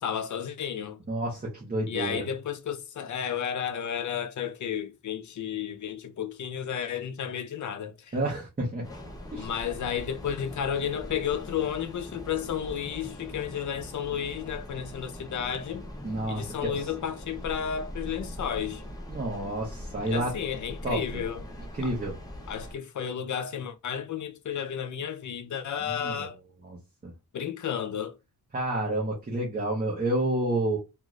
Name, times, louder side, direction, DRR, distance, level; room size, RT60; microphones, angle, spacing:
voice 1, 0.0-1.0 1.9-8.1 9.4-15.8 16.3-18.8 20.1-21.4 22.5-26.4 27.3-28.1, left 8 dB, 55° left, 0.5 m, -32 dB
voice 2, 1.1-2.2 8.1-8.9 9.3-9.5 16.0-16.8 19.1-20.3 20.8-21.2 21.8-22.2 25.8-26.3 26.6-26.8 27.0-27.1 28.5-30.8, right 1 dB, 25° right, 0.8 m, -30 dB
Train, 8.8-22.7, equal, 10° left, 0.6 m, -41 dB
2.5 x 2.5 x 3.0 m
wide cardioid pair, 150°, 37 cm